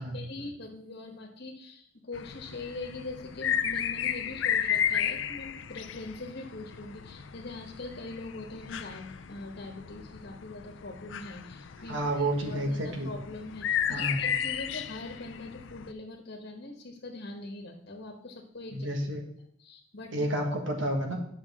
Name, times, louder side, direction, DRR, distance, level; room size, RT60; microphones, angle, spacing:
voice 1, 0.0-19.0 19.6-20.3, left 2 dB, 65° left, 1 dB, 1.2 m, -42 dB
sound 1, 2.1-15.9, left 9 dB, 85° left, 0.5 m, -34 dB
voice 2, 11.9-13.1 13.9-14.2 18.7-19.2 20.1-21.2, right 1 dB, 90° right, 3 dB, 1.6 m, -30 dB
9.4 x 6.3 x 3.6 m, 0.67 s
head